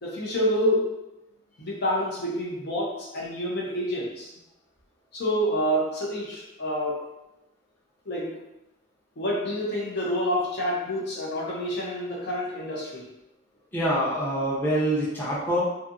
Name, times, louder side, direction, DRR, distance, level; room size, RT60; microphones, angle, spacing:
voice 1, 0.0-0.9 1.6-4.3 5.1-7.1 8.1-8.3 9.2-13.0, equal, 55° left, -3 dB, 0.6 m, -28 dB
voice 2, 13.7-15.6, right 1 dB, 10° left, -8 dB, 0.6 m, -25 dB
2.6 x 2.5 x 2.5 m, 0.91 s
head